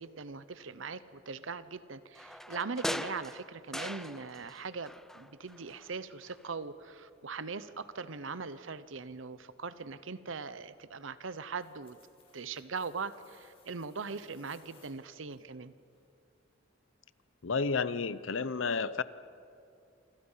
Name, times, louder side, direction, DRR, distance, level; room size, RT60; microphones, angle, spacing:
voice 1, 0.0-12.0 12.3-15.7, right 4 dB, 80° right, 14 dB, 0.9 m, -40 dB
sound 1, 2.1-4.6 4.8-5.9 6.3-6.4, equal, ahead, 0.5 m, -40 dB
sound 2, 11.4-15.4 15.9-16.0, left 4 dB, 30° left, 5.4 m, -63 dB
voice 2, 17.4-19.0, left 4 dB, 80° left, 15 dB, 0.7 m, -31 dB
28.0 x 25.5 x 5.7 m, 2.6 s
head